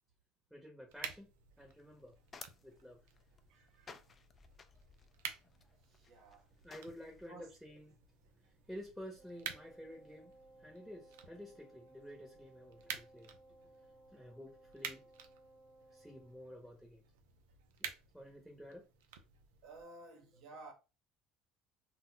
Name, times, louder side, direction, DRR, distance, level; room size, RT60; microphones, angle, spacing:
voice 1, 0.5-1.3 1.6-2.1 2.6-3.0 6.6-8.0 8.4-10.3 10.6-13.3 14.1-15.0 15.9-17.0 17.8-17.9 18.1-18.9, equal, ahead, 0.9 m, -51 dB
sound 1, 0.9-19.9, right 8 dB, 75° right, 0.5 m, -51 dB
sound 2, 1.7-7.3, left 5 dB, 35° left, 0.4 m, -58 dB
voice 2, 3.5-3.9 5.9-6.5 7.3-7.5 19.6-20.7, right 2 dB, 60° right, 0.9 m, -54 dB
Wind instrument woodwind instrument, 9.2-16.5, right 1 dB, 30° right, 0.6 m, -61 dB
2.2 x 2.0 x 3.8 m
hypercardioid pair, 70°, 0 cm